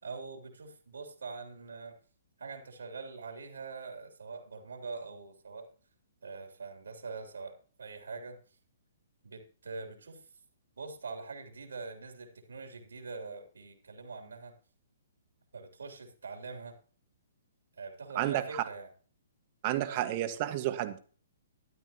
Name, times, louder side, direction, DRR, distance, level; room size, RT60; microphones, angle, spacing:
voice 1, 0.0-2.0 2.4-5.7 6.2-8.4 9.2-10.2 10.8-14.5 15.5-16.8 17.8-18.9 19.9-20.1, right 4 dB, 75° right, 4 dB, 3.1 m, -43 dB
voice 2, 18.1-18.6 19.6-21.0, right 14 dB, 40° right, 9 dB, 1.6 m, -31 dB
13.0 x 12.0 x 3.0 m, 0.40 s
figure-of-eight pair, 130°, 0 cm